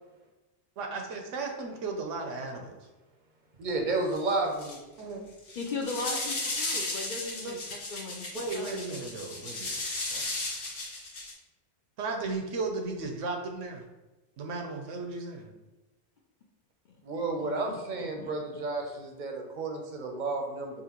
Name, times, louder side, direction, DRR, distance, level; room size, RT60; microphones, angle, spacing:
voice 1, 0.8-2.8 5.0-5.2 7.4-7.6 8.3-9.7 10.1-10.3 12.0-13.8 14.4-15.5, right 3 dB, 90° right, 3 dB, 1.1 m, -35 dB
voice 2, 3.6-4.8 17.0-20.8, right 3 dB, 50° right, 2 dB, 0.6 m, -31 dB
sound 1, 4.1-4.3 4.6-5.0 5.4-11.3, left 2 dB, 80° left, 1.4 m, -35 dB
voice 3, 5.6-7.6 7.9-8.7 17.4-18.3, left 3 dB, 55° left, 0 dB, 0.6 m, -38 dB
5.6 x 2.5 x 2.9 m, 1.1 s
omnidirectional pair, 1.2 m